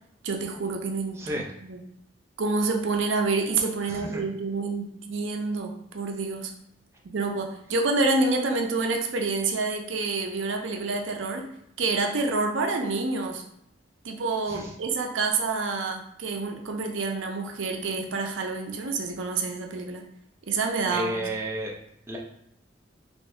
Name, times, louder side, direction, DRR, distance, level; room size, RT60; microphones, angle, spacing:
voice 1, 0.2-1.8 2.4-6.5 7.0-11.5 11.8-13.4 14.0-20.0 20.5-21.2, right 3 dB, 85° right, 3 dB, 0.5 m, -28 dB
voice 2, 3.9-4.2 14.5-14.7 20.9-21.7 22.1-22.2, right 1 dB, 15° right, -2 dB, 0.5 m, -31 dB
3.1 x 2.7 x 3.2 m, 0.75 s
head